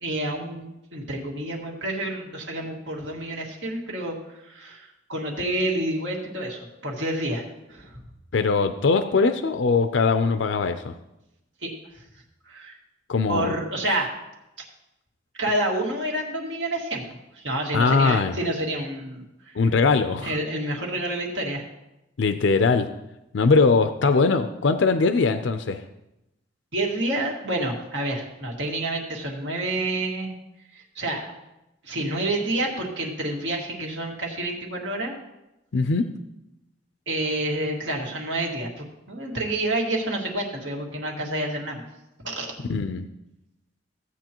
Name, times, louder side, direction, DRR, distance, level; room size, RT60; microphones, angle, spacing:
voice 1, 0.0-4.2 4.5-8.0 11.6-11.7 12.5-12.8 13.3-14.1 15.4-17.0 17.4-19.2 20.2-21.6 26.7-30.3 30.7-31.3 31.8-35.1 37.1-41.8 42.2-42.5, right 1 dB, 75° right, 0 dB, 2.0 m, -28 dB
voice 2, 8.3-10.9 13.1-13.5 17.7-18.4 19.6-20.4 22.2-22.9 23.3-25.8 35.7-36.1 42.7-43.1, left 4 dB, 80° left, 9 dB, 0.5 m, -21 dB
15.5 x 8.3 x 3.0 m, 0.91 s
head